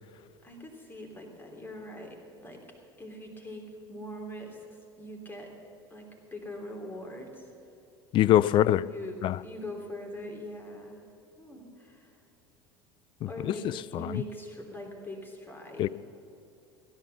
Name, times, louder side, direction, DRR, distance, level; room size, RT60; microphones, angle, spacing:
voice 1, 0.4-2.6 3.0-5.5 5.9-7.5 8.8-11.0 11.4-12.2 13.3-15.9, left 1 dB, 15° left, 3.2 m, -42 dB
voice 2, 8.1-8.8 9.2-9.4 13.2-13.5 13.9-14.2 15.8-15.9, left 12 dB, 40° left, 0.4 m, -23 dB
16.0 x 10.5 x 6.9 m
figure-of-eight pair, 75°, 13 cm